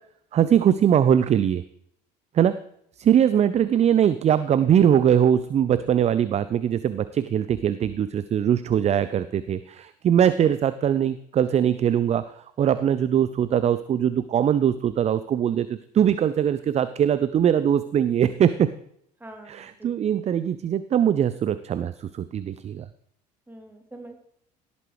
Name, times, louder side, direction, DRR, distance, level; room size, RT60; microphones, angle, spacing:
voice 1, 0.3-1.6 2.3-2.5 3.0-12.3 12.6-18.7 19.5-22.9, right 9 dB, 30° right, 15 dB, 0.5 m, -21 dB
voice 2, 19.2-20.2 23.5-24.1, right 2 dB, 10° right, 1 dB, 3.0 m, -44 dB
17.5 x 8.3 x 3.2 m, 0.70 s
figure-of-eight pair, 60°, 21 cm